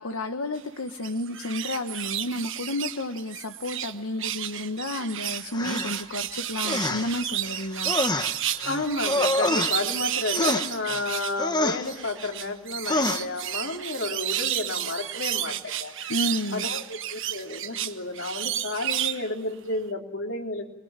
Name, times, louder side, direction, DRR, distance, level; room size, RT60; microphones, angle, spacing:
voice 1, 0.0-7.9 16.1-16.6, left 1 dB, 85° left, 6 dB, 1.4 m, -31 dB
sound 1, 0.9-3.9 4.2-11.4 11.8-19.3 19.7-19.8, right 11 dB, 65° right, 1.3 m, -31 dB
sound 2, 5.5-6.0 6.6-7.2 7.5-10.1 10.3-11.1 11.4-11.9 12.9-13.3, left 2 dB, 20° left, 1.4 m, -27 dB
voice 2, 8.7-16.2 16.5-20.6, left 2 dB, 65° left, 3 dB, 3.8 m, -31 dB
27.0 x 22.5 x 9.0 m, 0.80 s
head